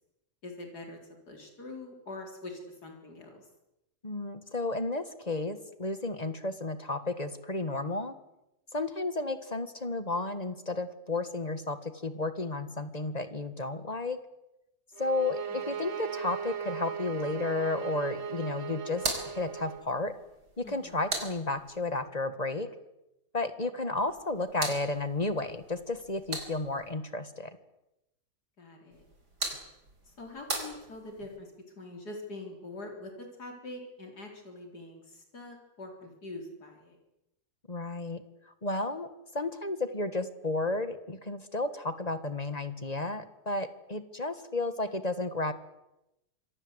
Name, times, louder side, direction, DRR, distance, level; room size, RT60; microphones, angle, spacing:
voice 1, 0.4-1.0 1.3-3.5 15.5-15.9 20.6-20.9 28.6-29.0 30.0-37.0, left 2 dB, 75° left, 3 dB, 4.3 m, -44 dB
voice 2, 4.0-8.1 8.7-14.2 15.0-20.1 20.6-22.7 23.3-27.5 37.7-38.2 38.6-39.1 39.3-45.5, left 2 dB, 25° left, 11 dB, 1.7 m, -32 dB
sound 1, 15.0-19.9, right 6 dB, 45° right, 1.3 m, -37 dB
sound 2, 18.9-22.0 24.0-26.9 28.9-31.4, right 2 dB, 80° right, 5.2 m, -39 dB
26.5 x 23.0 x 8.1 m, 0.91 s
omnidirectional pair, 1.7 m